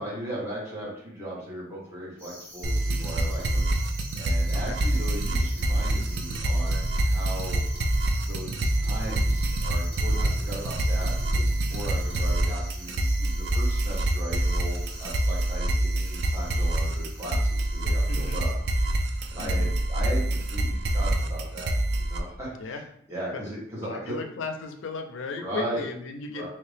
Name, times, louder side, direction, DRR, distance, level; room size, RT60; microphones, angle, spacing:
voice 1, 0.0-3.7 4.1-7.6 8.3-18.5 19.3-22.8 23.1-24.2 25.3-25.8 26.3-26.5, right 1 dB, 15° right, -7 dB, 1.3 m, -37 dB
sound 1, 2.2-18.6, right 1 dB, 5° left, 1.1 m, -46 dB
sound 2, 2.6-22.2, right 1 dB, 60° right, 0.4 m, -26 dB
voice 2, 18.1-18.4 19.4-19.8 22.6-22.8 23.3-23.4 23.8-26.5, left 3 dB, 80° left, 5 dB, 0.4 m, -36 dB
3.2 x 2.8 x 3.3 m, 0.73 s
head